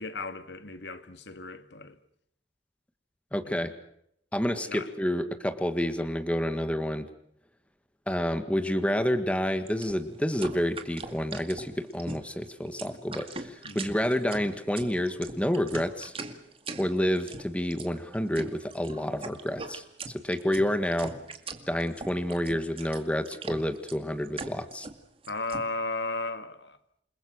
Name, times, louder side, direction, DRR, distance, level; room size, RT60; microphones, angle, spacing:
voice 1, 0.0-2.0 3.4-3.7 4.7-4.9 13.6-13.9 25.3-26.8, left 3 dB, 80° left, 1.9 m, -35 dB
voice 2, 3.3-3.7 4.3-7.1 8.1-16.1 16.8-19.8 20.1-21.1 21.7-24.9, equal, 5° left, 1.8 m, -29 dB
sound 1, 9.7-25.6, right 3 dB, 30° right, 2.2 m, -41 dB
29.0 x 20.5 x 6.5 m
head